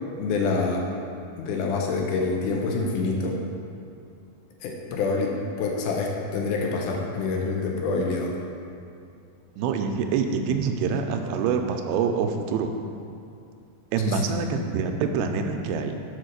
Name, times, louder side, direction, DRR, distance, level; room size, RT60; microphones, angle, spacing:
voice 1, 0.2-0.9 1.4-3.4 4.6-8.3 14.0-14.2, left 3 dB, 75° left, 0 dB, 2.0 m, -26 dB
voice 2, 9.6-12.7 13.9-16.0, right 5 dB, 85° right, 5 dB, 2.5 m, -26 dB
7.5 x 4.5 x 6.5 m, 2.6 s
omnidirectional pair, 4.4 m